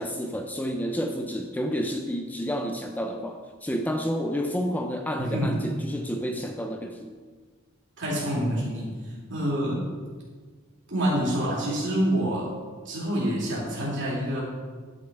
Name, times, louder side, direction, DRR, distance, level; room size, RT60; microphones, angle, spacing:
voice 1, 0.0-7.2, equal, 10° left, 4 dB, 0.4 m, -30 dB
voice 2, 5.2-5.6 8.0-9.9 10.9-12.5 12.8-14.4, equal, 55° right, -5 dB, 3.2 m, -27 dB
10.5 x 6.4 x 4.6 m, 1.5 s
head